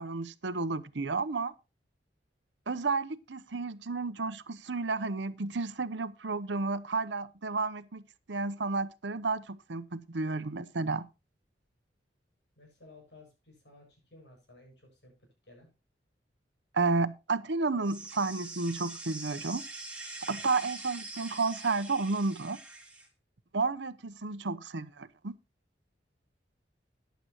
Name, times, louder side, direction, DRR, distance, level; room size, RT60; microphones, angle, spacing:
voice 1, 0.0-1.5 2.7-8.0 8.3-11.1 16.7-19.6 20.3-22.6 23.5-25.3, right 3 dB, 75° right, 0.8 m, -32 dB
voice 2, 12.6-15.7, left 2 dB, 70° left, 7.4 m, -56 dB
sound 1, 17.8-23.1, right 2 dB, 5° right, 2.6 m, -44 dB
14.5 x 10.5 x 3.0 m
head